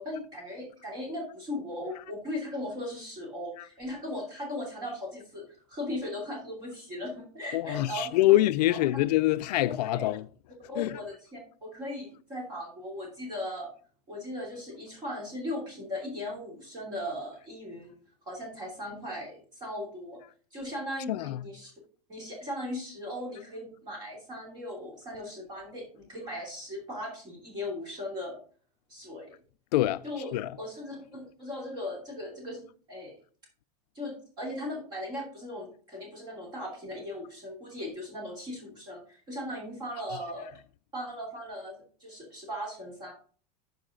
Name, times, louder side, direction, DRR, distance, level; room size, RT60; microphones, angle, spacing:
voice 1, 0.0-8.2 8.7-9.0 9.6-10.1 10.7-13.7 14.1-17.9 18.2-20.2 20.5-21.7 22.1-28.4 28.9-29.3 30.0-30.3 30.6-33.1 33.9-40.5 40.9-43.1, left 1 dB, 20° right, 2.9 m, -38 dB
voice 2, 7.5-10.2 10.8-11.0 21.1-21.4 29.7-30.0 30.3-30.5, left 16 dB, 75° left, 0.4 m, -25 dB
11.5 x 4.8 x 3.7 m
supercardioid pair, 180°, 21 cm